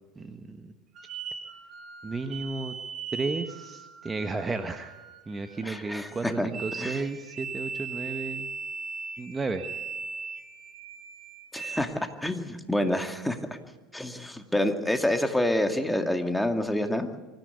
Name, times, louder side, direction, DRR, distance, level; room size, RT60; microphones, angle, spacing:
voice 1, 0.2-0.7 2.0-2.7 3.1-4.9 5.3-8.5 9.2-9.6, right 3 dB, 20° right, 7 dB, 1.4 m, -33 dB
sound 1, 1.0-11.8, right 5 dB, 40° right, 2.7 m, -39 dB
voice 2, 5.6-6.5 6.8-7.0 11.5-13.4 13.9-17.1, left 1 dB, 5° left, 5 dB, 2.3 m, -28 dB
24.0 x 15.0 x 8.3 m, 1.3 s
hypercardioid pair, 75°, 0 cm